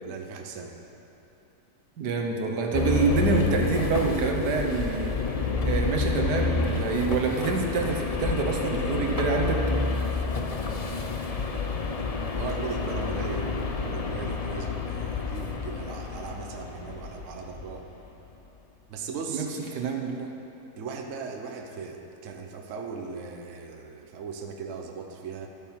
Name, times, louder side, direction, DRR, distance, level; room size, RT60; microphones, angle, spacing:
voice 1, 0.0-0.8 12.3-13.5 13.8-17.8 18.9-19.5 20.8-25.5, right 5 dB, 55° right, 3 dB, 1.2 m, -38 dB
voice 2, 2.0-5.1 5.6-9.6 19.3-19.5 19.7-20.3, right 4 dB, 85° right, 2 dB, 1.7 m, -26 dB
sound 1, 2.7-17.9, left 4 dB, 45° left, 0.4 m, -29 dB
12.0 x 8.7 x 5.7 m, 2.9 s
omnidirectional pair, 1.7 m